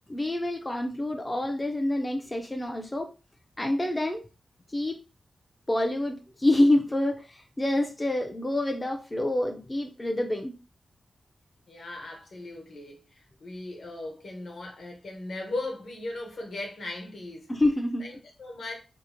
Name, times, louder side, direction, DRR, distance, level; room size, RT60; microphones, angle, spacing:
voice 1, 0.1-3.1 3.6-4.2 4.7-5.0 5.7-10.5 17.5-18.1, left 1 dB, 20° left, 0.3 m, -27 dB
voice 2, 11.7-17.5 18.0-18.7, left 2 dB, 70° left, 0.9 m, -38 dB
2.7 x 2.1 x 2.5 m
wide cardioid pair, 115°, 0 cm